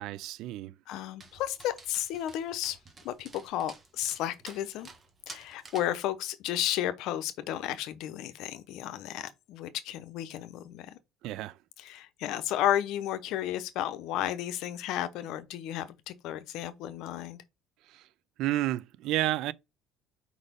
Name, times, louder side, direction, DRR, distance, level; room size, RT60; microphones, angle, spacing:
voice 1, 0.0-0.7 11.2-11.6 17.9-18.0 18.4-19.5, right 15 dB, 70° right, 0.4 m, -31 dB
voice 2, 0.9-2.8 3.0-4.9 5.3-10.9 11.8-17.4, left 12 dB, 70° left, 0.7 m, -33 dB
Dog, 1.2-6.0, right 3 dB, 25° right, 1.5 m, -51 dB
4.9 x 4.1 x 5.1 m
cardioid pair, 130°, 0 cm